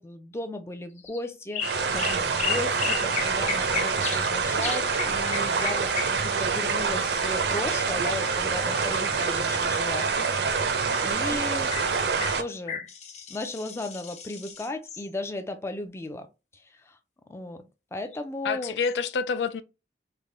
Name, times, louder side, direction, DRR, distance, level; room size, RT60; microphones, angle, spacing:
voice 1, 0.0-10.4 11.0-11.7 12.4-12.9 13.3-16.3 16.5-17.0 17.3-18.8, left 1 dB, 15° left, 0.4 m, -36 dB
sound 1, 1.0-1.2 1.5-4.3 4.6-7.8 11.2-11.3 11.7-11.9 12.2-15.1 18.0-18.2 18.8-18.9, left 7 dB, 40° left, 0.7 m, -34 dB
sound 2, 1.6-12.4, right 5 dB, 70° right, 0.5 m, -26 dB
voice 2, 11.1-11.4 18.4-19.6, left 5 dB, 80° left, 0.4 m, -28 dB
3.4 x 2.1 x 3.8 m
head